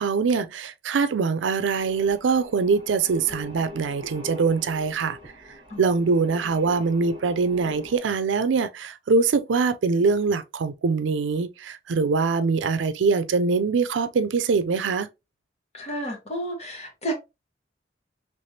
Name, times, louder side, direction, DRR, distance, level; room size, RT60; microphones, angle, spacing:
voice 1, 0.0-5.2 5.8-15.1, right 4 dB, 85° right, 0.4 m, -23 dB
sound 1, 1.4-8.0, left 3 dB, 30° right, 1.2 m, -43 dB
voice 2, 15.7-17.1, right 1 dB, 35° left, 1.3 m, -31 dB
3.4 x 3.2 x 2.7 m
head